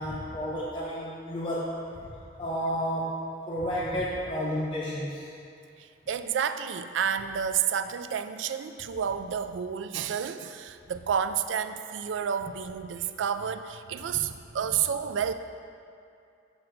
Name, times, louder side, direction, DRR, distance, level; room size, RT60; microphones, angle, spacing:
voice 1, 0.0-1.8 2.4-5.3, equal, 25° left, -6 dB, 0.6 m, -31 dB
voice 2, 5.8-15.3, right 8 dB, 70° right, 10 dB, 0.3 m, -30 dB
6.4 x 6.1 x 4.5 m, 2.4 s
head